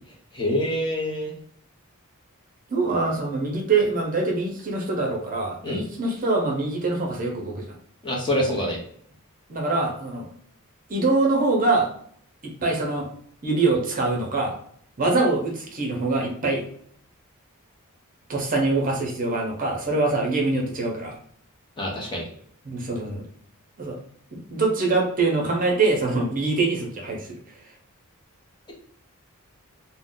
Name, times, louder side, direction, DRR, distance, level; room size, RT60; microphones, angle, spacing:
voice 1, 0.3-1.3 5.6-5.8 8.0-8.8 21.8-22.2, left 1 dB, 20° left, -2 dB, 0.7 m, -25 dB
voice 2, 2.7-7.6 9.5-10.3 10.9-11.9 12.4-13.1 13.4-14.6 15.0-16.6 18.3-21.2 22.6-23.2 23.8-24.0 24.3-27.4, right 3 dB, 40° right, 0 dB, 0.7 m, -24 dB
2.6 x 2.1 x 3.6 m, 0.63 s
head